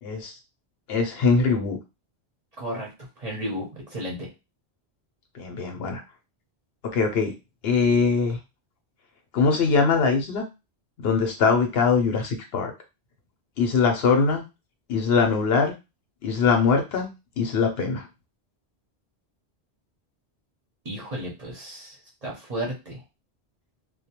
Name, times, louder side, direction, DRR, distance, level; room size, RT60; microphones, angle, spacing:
voice 1, 0.0-0.3 0.9-1.8 5.3-6.0 6.9-7.3 7.6-8.4 9.3-10.4 11.0-12.7 13.6-14.4 14.9-15.7 16.2-17.1 17.4-18.1, left 5 dB, 70° left, 4 dB, 0.8 m, -22 dB
voice 2, 2.6-2.9 3.2-3.7 3.9-4.3 20.8-21.9 22.2-23.0, equal, 40° right, -2 dB, 0.7 m, -32 dB
2.2 x 2.2 x 2.8 m, 0.26 s
omnidirectional pair, 1.1 m